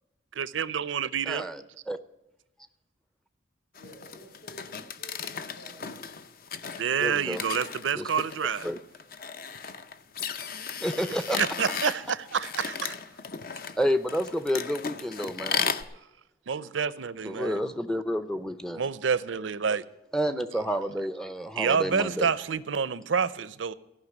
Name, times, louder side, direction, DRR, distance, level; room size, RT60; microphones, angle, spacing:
voice 1, 0.4-1.5 6.8-8.7 11.3-12.0 12.3-12.9 16.5-17.6 18.8-19.8 21.6-23.7, right 6 dB, 80° right, 0.6 m, -28 dB
voice 2, 1.3-2.0 7.0-7.4 7.9-8.1 8.6-8.8 10.8-11.4 13.8-15.7 17.2-18.8 20.1-22.3, equal, 5° left, 0.5 m, -30 dB
voice 3, 3.7-6.1 10.1-11.2 16.8-18.1, equal, 80° left, 5.8 m, -54 dB
sound 1, 3.8-15.8, left 6 dB, 50° left, 0.6 m, -36 dB
14.5 x 5.7 x 9.6 m
head